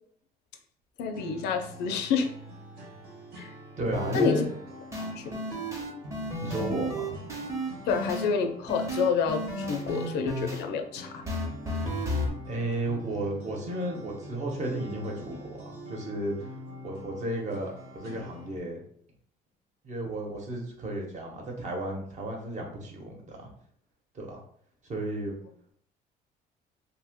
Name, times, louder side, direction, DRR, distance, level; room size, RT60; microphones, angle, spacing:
voice 1, 1.0-2.3 3.4-3.5 4.1-4.4 5.0-5.4 7.9-11.2, left 5 dB, 85° left, 7 dB, 0.5 m, -28 dB
sound 1, 1.1-18.6, equal, 70° right, 1.1 m, -45 dB
voice 2, 3.8-4.5 6.4-7.2 12.5-16.5 16.8-18.8 19.8-23.5 24.1-24.4 24.8-25.3, right 1 dB, 45° right, 1 dB, 1.0 m, -33 dB
sound 2, 3.9-4.3 4.9-8.3 8.7-10.6 11.3-12.3, equal, 15° right, 0.8 m, -33 dB
2.8 x 2.2 x 3.5 m, 0.63 s
cardioid pair, 110°, 17 cm